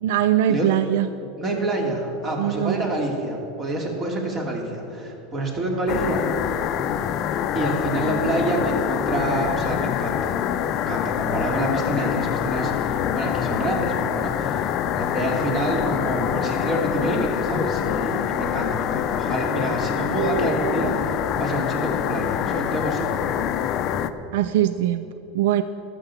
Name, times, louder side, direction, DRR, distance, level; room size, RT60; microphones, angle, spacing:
voice 1, 0.0-1.1 2.4-2.9 24.3-25.6, right 12 dB, 75° right, 12 dB, 0.3 m, -22 dB
voice 2, 1.4-6.2 7.5-10.3 10.7-23.3, right 1 dB, 30° right, 0 dB, 2.6 m, -27 dB
sound 1, 5.9-24.1, left 9 dB, 50° left, 0.6 m, -25 dB
13.0 x 6.9 x 6.9 m, 2.8 s
hypercardioid pair, 105°, 0 cm